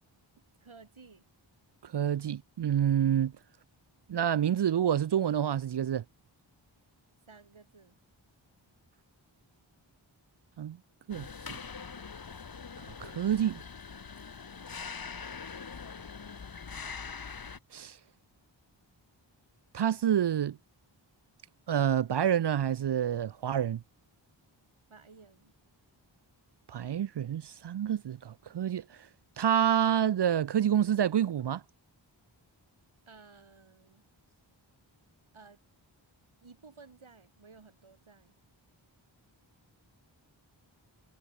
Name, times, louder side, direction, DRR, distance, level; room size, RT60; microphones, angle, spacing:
voice 1, 0.6-1.3 7.3-8.0 24.9-25.5 33.1-34.4 35.3-35.6 36.4-38.3, right 4 dB, 85° right, 7.7 m, -55 dB
voice 2, 1.8-3.3 4.1-6.0 10.6-10.8 11.1-11.6 12.8-13.6 17.7-18.0 19.7-20.6 21.7-23.8 26.7-29.0 29.4-31.6, right 9 dB, 60° right, 0.5 m, -28 dB
sound 1, 11.1-17.6, left 5 dB, 50° left, 1.1 m, -43 dB
wide cardioid pair, 65°, 47 cm